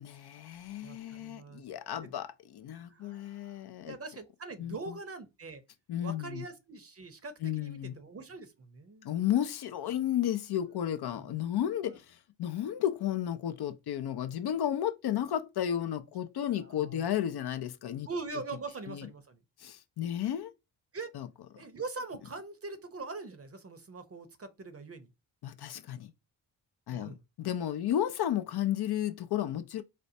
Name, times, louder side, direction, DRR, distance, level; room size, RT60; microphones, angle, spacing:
voice 1, 0.0-4.0 4.6-5.0 5.9-6.4 7.4-7.9 9.0-18.1 18.9-19.1 19.6-20.5 21.1-21.3 25.4-26.1 26.9-29.8, left 11 dB, 55° left, 0.5 m, -33 dB
voice 2, 0.8-1.6 2.0-2.1 2.7-5.6 6.0-9.1 11.1-11.3 16.6-17.3 18.1-19.4 20.9-21.1 21.6-25.1 26.9-27.2, right 3 dB, 30° right, 0.7 m, -43 dB
4.3 x 2.1 x 2.6 m
supercardioid pair, 60°, 48 cm